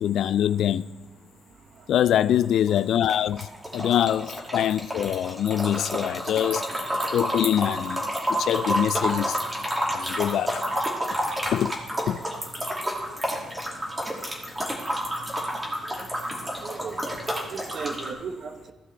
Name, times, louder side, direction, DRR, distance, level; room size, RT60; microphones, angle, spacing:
voice 1, 0.0-0.9 1.9-6.6 7.1-9.4 9.9-10.6 11.5-11.8 12.1-12.2, left 10 dB, 75° left, 0.3 m, -24 dB
sound 1, 2.4-2.8 3.0-18.1, equal, 15° right, 2.5 m, -30 dB
voice 2, 16.6-17.0 17.2-18.7, right 5 dB, 55° right, 1.2 m, -36 dB
15.5 x 6.1 x 3.4 m
cardioid pair, 90°, 0 cm